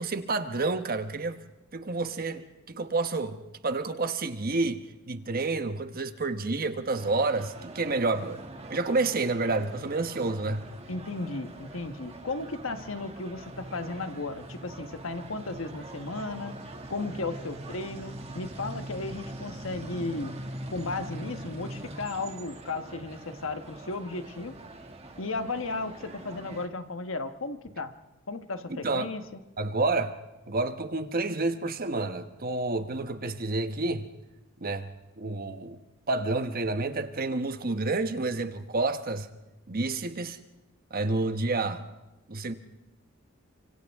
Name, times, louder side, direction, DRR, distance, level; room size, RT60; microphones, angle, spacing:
voice 1, 0.0-1.4 1.7-8.4 8.7-10.6 28.7-29.1 29.6-30.1 30.5-34.1 34.6-34.9 35.2-35.8 36.1-39.3 39.7-40.4 40.9-41.8 42.3-42.5, right 3 dB, 45° right, 1.2 m, -29 dB
sound 1, 6.9-26.7, right 1 dB, 30° right, 2.2 m, -43 dB
voice 2, 10.9-16.6 16.9-20.3 20.7-24.5 25.2-27.9 28.3-29.4, left 3 dB, 75° left, 1.3 m, -35 dB
29.5 x 26.0 x 3.6 m
head